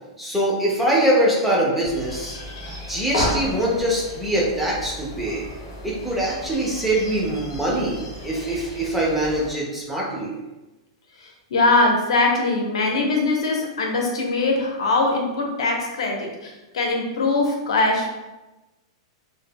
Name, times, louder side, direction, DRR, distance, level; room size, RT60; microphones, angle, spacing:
voice 1, 0.2-2.4 2.9-5.5 5.8-10.4, right 1 dB, 5° right, -4 dB, 0.3 m, -23 dB
sound 1, 1.8-9.5, left 1 dB, 45° left, 0.7 m, -33 dB
voice 2, 11.2-18.1, left 2 dB, 85° left, 1 dB, 0.6 m, -22 dB
2.2 x 2.1 x 3.3 m, 1.1 s
supercardioid pair, 180°, 3 cm